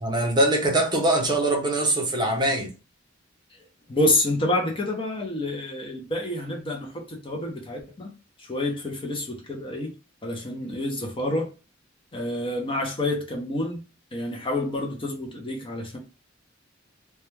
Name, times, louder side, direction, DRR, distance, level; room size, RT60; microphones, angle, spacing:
voice 1, 0.0-2.7, right 1 dB, 25° right, 0.6 m, -23 dB
voice 2, 3.9-8.1 8.4-9.9 10.2-11.5 12.1-13.8 14.1-16.0, left 1 dB, 25° left, 0.5 m, -28 dB
2.2 x 2.1 x 3.0 m
head